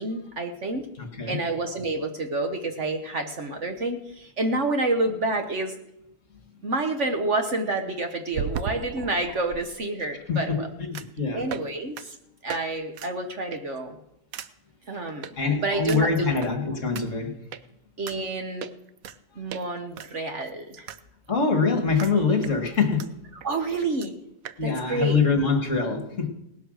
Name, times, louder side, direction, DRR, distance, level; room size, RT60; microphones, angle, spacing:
voice 1, 0.0-0.9 1.3-5.8 6.6-10.7 11.3-12.2 12.4-14.0 14.9-15.3 15.6-16.3 18.0-18.7 19.4-20.9 23.4-24.1 24.6-25.2, right 2 dB, 50° right, 6 dB, 1.3 m, -28 dB
voice 2, 1.0-1.4 10.3-11.5 15.4-17.4 21.3-23.1 24.6-26.3, left 4 dB, 50° left, 6 dB, 1.9 m, -24 dB
sound 1, 5.8-5.9 8.3-9.6 10.9-11.2 11.5-11.7 12.0-12.1 12.5-12.6 12.9-13.1 13.5-13.8 14.3-14.5 15.2-15.3 15.9-16.5 16.9-17.0 17.5-17.6 18.1-18.2 18.6-19.2 19.5-19.6 20.0-21.0 21.3-21.4 22.0-22.1 22.4-23.1 23.4-23.5 23.7-23.8 24.0-24.1 24.4-24.6, right 8 dB, 65° right, 1.0 m, -36 dB
18.5 x 8.0 x 6.3 m, 0.84 s
omnidirectional pair, 1.8 m